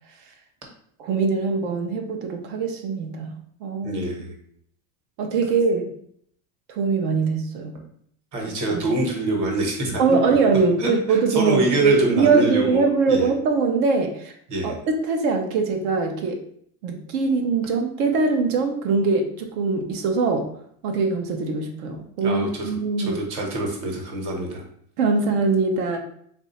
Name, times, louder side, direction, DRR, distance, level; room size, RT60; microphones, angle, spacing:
voice 1, 1.0-3.3 3.6-4.0 5.2-5.9 6.7-7.7 8.7-9.0 10.0-14.3 14.6-16.4 16.8-20.5 20.8-23.2 25.0-26.0, right 4 dB, 75° right, 3 dB, 0.8 m, -22 dB
voice 2, 3.8-4.3 8.3-10.2 10.8-12.8 13.1-13.3 14.5-14.8 22.2-24.6, right 1 dB, 45° right, 0 dB, 1.2 m, -26 dB
3.3 x 2.6 x 4.1 m, 0.65 s
cardioid pair, 155°, 40 cm